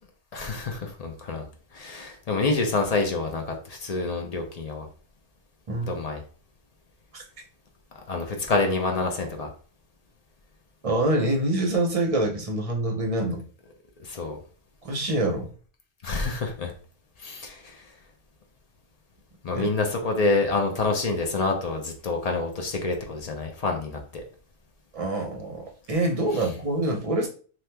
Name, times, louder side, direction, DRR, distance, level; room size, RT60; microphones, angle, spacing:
voice 1, 0.3-1.4 1.7-4.9 5.8-6.2 7.9-9.5 14.0-14.4 16.0-16.7 17.2-17.9 19.4-24.2, left 3 dB, 45° left, 3 dB, 0.5 m, -27 dB
voice 2, 10.8-13.4 14.8-15.5 19.5-19.7 24.9-27.3, right 1 dB, 40° right, 1 dB, 0.6 m, -26 dB
2.8 x 2.3 x 3.3 m, 0.41 s
omnidirectional pair, 1.2 m